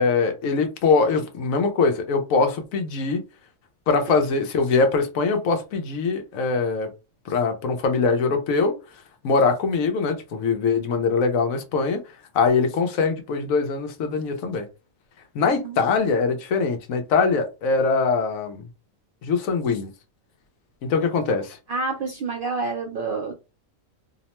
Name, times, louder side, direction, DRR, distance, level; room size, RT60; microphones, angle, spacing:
voice 1, 0.0-3.2 3.9-6.9 7.3-8.7 9.2-12.0 12.3-14.7 15.3-18.6 19.2-19.9 20.8-21.6, left 4 dB, 80° left, 1.1 m, -22 dB
voice 2, 21.7-23.3, right 3 dB, 60° right, 0.5 m, -28 dB
2.9 x 2.1 x 2.9 m
omnidirectional pair, 1.4 m